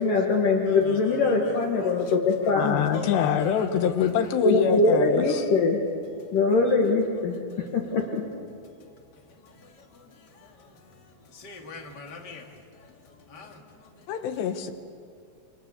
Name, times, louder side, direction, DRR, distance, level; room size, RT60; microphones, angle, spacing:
voice 1, 0.0-2.9 4.4-6.0 6.3-8.2, left 3 dB, 55° left, 2.9 m, -23 dB
voice 2, 0.6-2.1 2.4-2.5 2.9-3.7 4.0-4.3 5.3-5.5 7.5-7.7 9.4-14.1, left 3 dB, 30° left, 2.4 m, -44 dB
voice 3, 2.6-5.5 14.1-14.7, left 8 dB, 75° left, 3.3 m, -25 dB
28.0 x 26.0 x 6.7 m
omnidirectional pair, 5.2 m